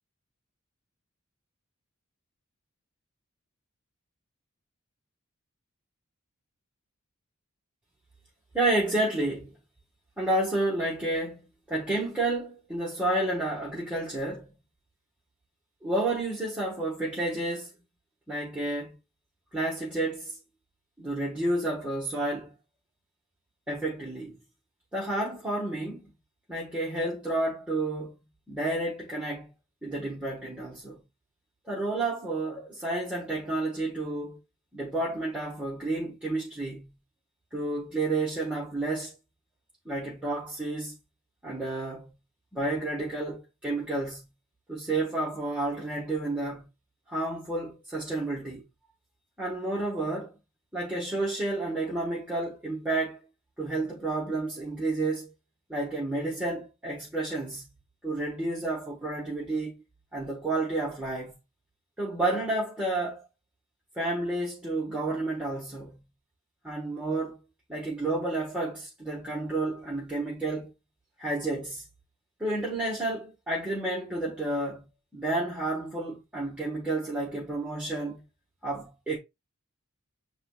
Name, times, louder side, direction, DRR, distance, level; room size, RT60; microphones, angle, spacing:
voice 1, 8.5-9.6 10.2-14.5 15.8-17.7 18.3-19.0 19.5-20.4 21.0-22.5 23.7-24.4 24.9-26.1 26.5-28.1 28.5-29.5 29.8-31.0 31.7-34.4 34.7-36.9 37.5-39.1 39.8-41.0 41.4-42.1 42.5-44.3 44.7-46.7 47.1-48.6 49.4-50.3 50.7-53.2 53.6-55.3 55.7-57.7 58.0-59.8 60.1-61.3 62.0-63.2 63.9-66.0 66.6-67.4 67.7-70.7 71.2-71.8 72.4-74.8 75.1-78.2 78.6-79.2, right 2 dB, 5° right, 1.1 m, -30 dB
7.6 x 3.1 x 2.2 m
head